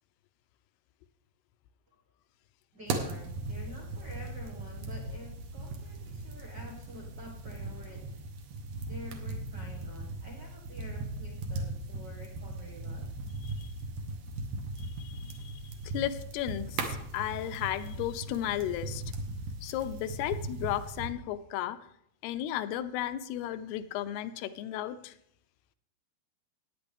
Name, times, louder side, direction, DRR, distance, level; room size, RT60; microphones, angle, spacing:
voice 1, 2.7-8.2 8.9-13.3, left 1 dB, 85° right, -2 dB, 0.9 m, -49 dB
sound 1, 2.9-21.1, right 2 dB, 70° right, 2.0 m, -38 dB
voice 2, 14.8-19.0 19.6-21.8 22.2-25.2, left 12 dB, 80° left, 12 dB, 2.4 m, -34 dB
16.5 x 9.4 x 3.5 m, 0.74 s
omnidirectional pair, 4.9 m